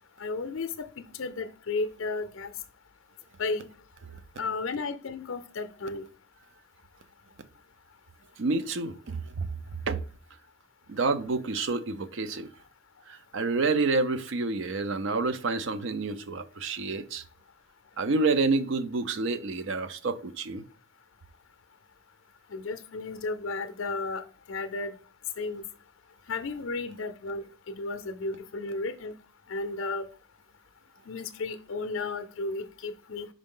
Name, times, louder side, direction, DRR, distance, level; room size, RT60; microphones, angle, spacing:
voice 1, 0.2-2.5 3.4-3.7 4.4-6.0 22.5-24.9 25.4-25.7 26.3-29.1 29.5-30.1 31.1-33.3, left 3 dB, 70° left, 0.5 m, -34 dB
voice 2, 8.4-9.2 9.8-10.0 10.9-12.5 13.1-17.2 18.0-20.6, right 3 dB, 65° right, 0.5 m, -28 dB
5.3 x 4.9 x 3.7 m
head